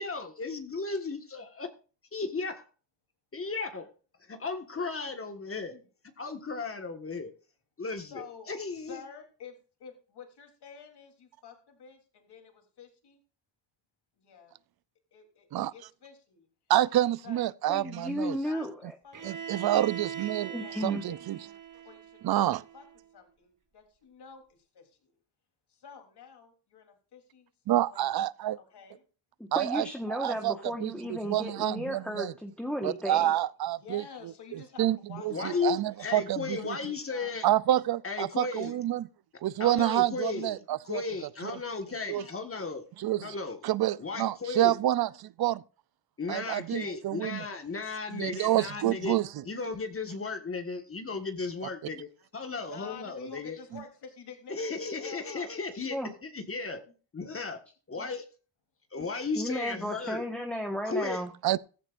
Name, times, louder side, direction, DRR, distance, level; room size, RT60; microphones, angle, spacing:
voice 1, 0.0-1.7 2.1-2.7 3.3-3.9 4.2-5.7 6.2-7.3 7.8-9.0 35.2-37.5 38.0-38.7 39.6-42.8 43.2-43.6 44.0-44.8 46.2-49.2 49.4-53.6 54.5-56.8 57.1-57.6 57.9-58.2 58.9-60.2 60.8-61.2, left 4 dB, 30° left, 1.6 m, -35 dB
voice 2, 8.1-8.5 8.9-13.2 14.1-14.5 15.1-16.5 17.2-17.4 17.9-18.7 19.0-19.2 19.5-19.6 20.6-21.5 21.8-22.5 22.7-22.8 23.1-25.2 25.7-27.5 27.9-28.1 28.6-29.0 31.2-31.3 33.8-35.7 36.3-37.3 38.6-38.8 52.6-54.6 55.0-55.5 58.0-58.1 59.0-59.1, left 6 dB, 70° left, 3.5 m, -50 dB
voice 3, 16.7-18.4 19.2-20.5 20.8-21.4 22.2-22.6 27.7-28.6 29.5-30.5 30.8-32.3 32.8-36.8 37.4-39.1 39.4-41.0 41.4-41.5 42.1-42.2 43.0-43.3 43.6-45.6 46.3-47.4 48.1-49.3 61.4-61.6, right 13 dB, 60° right, 0.6 m, -28 dB
voice 4, 17.7-19.0 19.2-19.3 19.7-19.9 20.4-21.0 29.5-33.3 55.9-56.1 59.4-61.3, equal, 5° left, 1.4 m, -34 dB
Bowed string instrument, 19.1-23.0, right 8 dB, 45° right, 2.3 m, -41 dB
15.0 x 14.5 x 2.6 m
cardioid pair, 115°, 42 cm